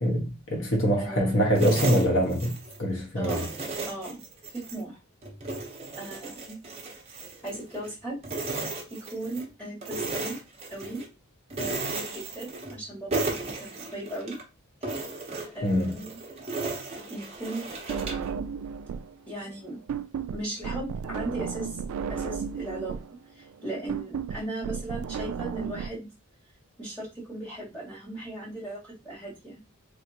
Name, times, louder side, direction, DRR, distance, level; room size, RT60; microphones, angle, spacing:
voice 1, 0.0-3.4 15.6-15.9, equal, 60° left, 1.3 m, -24 dB
voice 2, 1.0-1.5 3.2-4.2 4.5-5.0 5.9-6.6 7.4-8.2 8.9-10.4 10.7-11.0 11.6-14.4 15.5-16.2 17.1-18.5 19.3-19.8 20.3-21.8 22.1-22.9 23.3-26.1 26.8-29.6, right 1 dB, 5° left, 2.2 m, -37 dB
sound 1, 1.6-2.8 3.2-4.8 5.2-7.9 8.2-9.5 9.8-11.1 11.5-12.8 13.1-14.4 14.8-18.3, right 3 dB, 30° right, 1.0 m, -35 dB
sound 2, 17.9-19.2 19.4-25.9, right 7 dB, 75° right, 0.3 m, -34 dB
3.5 x 3.3 x 2.9 m
head